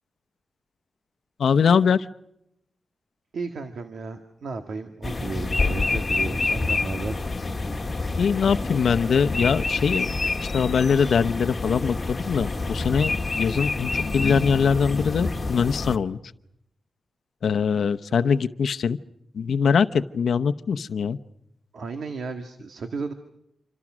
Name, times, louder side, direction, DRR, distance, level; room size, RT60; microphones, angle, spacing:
voice 1, 1.4-2.1 5.7-5.8 8.2-10.1 10.5-16.2 17.4-19.0 19.3-21.2, left 6 dB, 80° left, 10 dB, 0.9 m, -22 dB
voice 2, 3.3-7.2 21.7-23.1, right 4 dB, 75° right, 6 dB, 1.8 m, -34 dB
sound 1, 5.0-16.0, left 3 dB, 25° left, 1.7 m, -27 dB
28.0 x 25.5 x 6.2 m, 0.78 s
wide cardioid pair, 150°, 0 cm